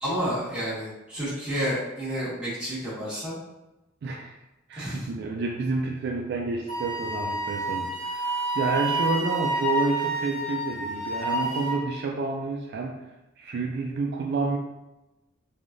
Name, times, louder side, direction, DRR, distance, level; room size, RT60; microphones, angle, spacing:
voice 1, 0.0-3.4 4.8-5.1, equal, 5° right, -11 dB, 1.4 m, -30 dB
voice 2, 4.0-4.3 4.7-12.9 13.4-14.6, right 3 dB, 55° right, 0 dB, 0.3 m, -29 dB
Wind instrument woodwind instrument, 6.7-11.8, right 1 dB, 40° left, 1.1 m, -29 dB
3.4 x 2.3 x 2.5 m, 1.0 s
head